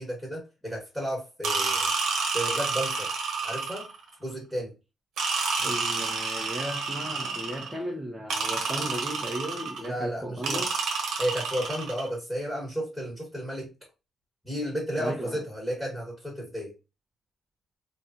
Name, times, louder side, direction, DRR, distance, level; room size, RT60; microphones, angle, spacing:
voice 1, 0.0-1.9 2.3-3.1 3.4-3.9 4.2-4.7 9.8-10.6 11.2-13.7 14.4-16.7, equal, 5° left, 1.4 m, -33 dB
sound 1, 1.4-4.0 5.2-7.8 8.3-9.9 10.4-12.1, right 4 dB, 80° right, 0.8 m, -29 dB
voice 2, 5.6-10.8 15.0-15.4, equal, 15° right, 0.7 m, -35 dB
3.2 x 2.3 x 2.7 m
cardioid pair, 90°, 0 cm